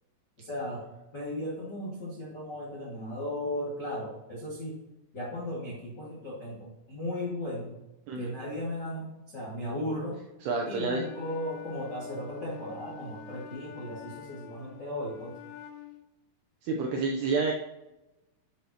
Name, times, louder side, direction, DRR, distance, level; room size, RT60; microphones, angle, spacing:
voice 1, 0.4-0.8 1.1-4.8 5.1-7.7 8.1-10.2 10.6-15.4, left 1 dB, 65° left, -5 dB, 1.0 m, -36 dB
voice 2, 10.4-11.0 16.6-17.5, right 4 dB, 80° right, 0 dB, 2.4 m, -29 dB
Wind instrument woodwind instrument, 10.9-16.0, left 8 dB, 85° left, 2.6 m, -47 dB
10.5 x 7.6 x 2.9 m, 0.98 s
omnidirectional pair, 5.8 m